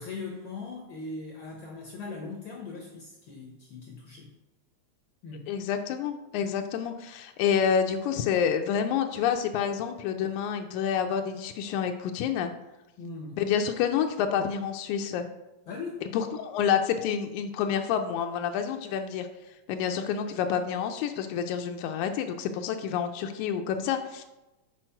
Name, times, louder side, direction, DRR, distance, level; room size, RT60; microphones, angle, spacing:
voice 1, 0.0-4.3 5.2-5.5 13.0-13.4 15.7-16.1, left 3 dB, 70° left, 0 dB, 1.2 m, -39 dB
voice 2, 5.5-12.5 13.4-15.3 16.1-19.3 19.7-24.2, left 8 dB, 85° left, 6 dB, 2.0 m, -28 dB
7.6 x 4.6 x 4.4 m, 1.0 s
omnidirectional pair, 3.4 m